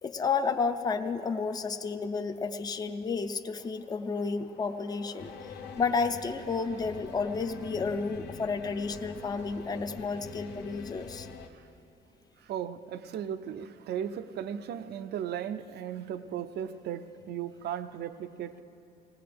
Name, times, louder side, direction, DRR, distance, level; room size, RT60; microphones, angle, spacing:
voice 1, 0.0-11.3, left 4 dB, 20° left, 8 dB, 0.5 m, -31 dB
sound 1, 3.1-6.3, left 7 dB, 55° left, 0.7 m, -51 dB
sound 2, 5.2-11.5, left 4 dB, 85° left, 1.1 m, -45 dB
voice 2, 12.4-18.6, right 9 dB, 70° right, 11 dB, 0.5 m, -36 dB
19.0 x 18.5 x 3.4 m, 2.8 s
cardioid pair, 170°, 18 cm